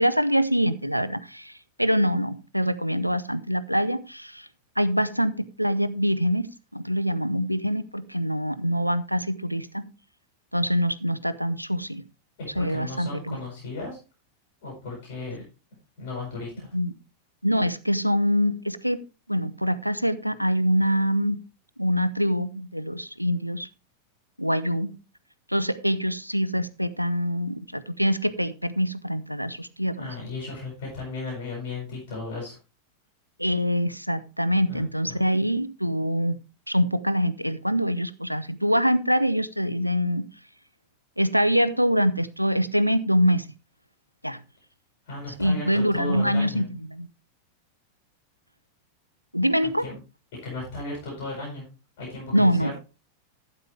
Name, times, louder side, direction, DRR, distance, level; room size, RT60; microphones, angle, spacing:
voice 1, 0.0-1.5 1.8-4.5 4.8-6.5 6.7-9.9 10.5-12.0 12.6-13.4 16.7-16.9 17.4-19.0 19.3-21.4 21.8-23.7 24.4-25.0 25.5-30.1 33.4-36.4 36.7-40.3 41.2-43.4 44.2-44.4 45.4-47.1 49.3-49.9 52.3-52.7, equal, 90° right, 15 dB, 0.6 m, -24 dB
voice 2, 12.5-14.0 14.6-15.4 16.0-16.7 30.0-32.6 34.7-35.2 45.1-46.7 49.6-50.0 50.4-51.6 52.0-52.7, left 3 dB, 50° left, -3 dB, 7.1 m, -35 dB
12.0 x 8.8 x 3.4 m, 0.31 s
figure-of-eight pair, 90°, 0 cm